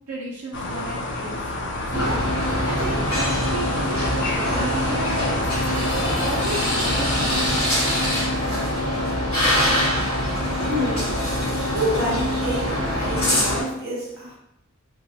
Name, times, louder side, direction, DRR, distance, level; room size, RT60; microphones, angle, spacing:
voice 1, 0.1-2.2 2.6-5.4 6.2-7.7, right 2 dB, 90° right, -6 dB, 0.6 m, -34 dB
sound 1, 0.5-7.6, left 2 dB, 55° left, 0.5 m, -30 dB
sound 2, 1.9-13.6, left 1 dB, 25° left, 1.2 m, -23 dB
voice 2, 10.7-11.1 11.7-14.4, equal, 45° right, -5 dB, 1.1 m, -27 dB
3.8 x 2.4 x 2.7 m, 0.81 s
head